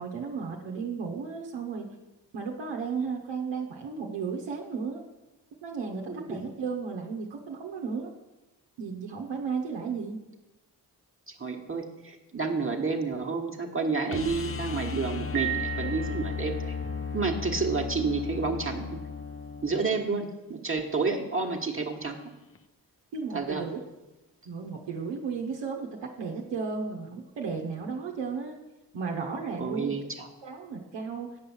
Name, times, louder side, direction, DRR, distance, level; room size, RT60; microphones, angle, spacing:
voice 1, 0.0-1.9 2.3-5.0 5.6-8.1 8.8-10.2 23.1-23.8 24.5-28.6 28.9-29.9 30.4-31.4, right 5 dB, 85° right, 0 dB, 1.0 m, -34 dB
voice 2, 6.1-6.4 11.3-16.7 17.1-19.0 19.6-22.2 23.3-23.6 29.6-30.3, right 4 dB, 30° right, 2 dB, 1.3 m, -30 dB
sound 1, 14.1-20.1 22.6-22.7, left 6 dB, 30° left, 0.7 m, -35 dB
Piano, 15.3-16.8, right 13 dB, 60° right, 1.0 m, -34 dB
8.6 x 5.5 x 7.1 m, 1.1 s
supercardioid pair, 45°, 42 cm